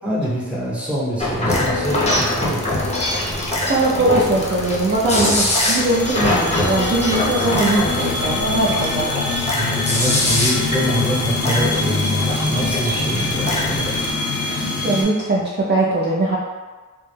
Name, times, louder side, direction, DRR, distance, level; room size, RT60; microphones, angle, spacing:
voice 1, 0.0-2.7 9.5-14.0, equal, 5° right, -8 dB, 0.9 m, -25 dB
sound 1, 1.2-14.1, left 1 dB, 20° left, 0.6 m, -23 dB
voice 2, 3.6-9.1 14.5-14.6 14.8-16.4, right 2 dB, 35° right, -6 dB, 0.4 m, -20 dB
sound 2, 5.7-15.0, left 3 dB, 90° left, 0.6 m, -24 dB
2.2 x 2.0 x 3.2 m, 1.3 s
wide cardioid pair, 50°, 33 cm